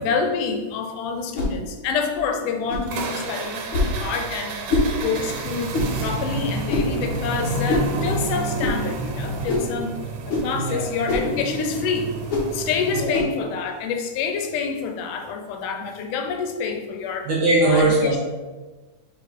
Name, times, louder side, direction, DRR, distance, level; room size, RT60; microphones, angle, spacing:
voice 1, 0.0-3.6 4.0-4.6 5.0-10.0 10.3-12.1 12.5-17.3 17.6-18.2, left 5 dB, 85° left, 5 dB, 2.2 m, -27 dB
sound 1, 1.3-1.6 2.7-2.9 3.7-4.0 4.7-4.9 5.7-6.0 6.7-7.0 7.7-7.9 8.6-8.8 9.5-9.7 10.3-10.5 11.1-11.3 12.3-12.5 13.1-13.3, left 2 dB, 55° left, 1.7 m, -23 dB
sound 2, 2.9-13.1, right 3 dB, 75° right, 1.9 m, -30 dB
voice 2, 10.5-10.9 12.9-13.2 17.2-18.2, right 2 dB, 45° right, -6 dB, 1.8 m, -20 dB
4.8 x 4.6 x 4.2 m, 1.3 s
omnidirectional pair, 3.6 m